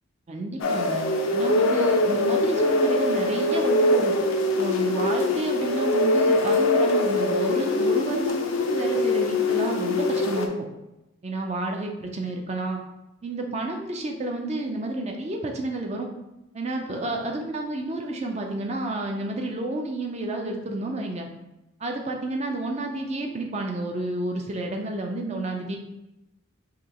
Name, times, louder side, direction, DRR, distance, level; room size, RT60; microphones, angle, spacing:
voice 1, 0.3-4.2 4.6-10.5 11.2-12.8 13.2-16.1 16.5-21.3 21.8-25.8, right 2 dB, 30° right, 2 dB, 0.5 m, -30 dB
sound 1, 0.6-10.5, left 2 dB, 80° left, 0.5 m, -23 dB
4.9 x 2.7 x 3.0 m, 0.94 s
head